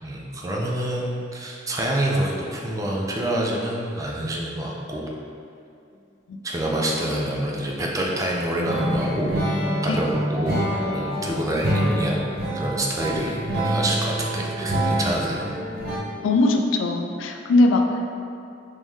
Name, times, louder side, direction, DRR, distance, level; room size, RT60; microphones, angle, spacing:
voice 1, 0.0-5.1 6.4-9.3 9.8-10.6 10.9-12.3 12.5-15.5, right 1 dB, 20° right, -2 dB, 0.3 m, -27 dB
sound 1, 8.7-16.0, equal, 55° right, 0.7 m, -26 dB
voice 2, 16.2-18.1, left 2 dB, 80° left, 4 dB, 0.3 m, -20 dB
3.7 x 2.6 x 3.0 m, 2.5 s
head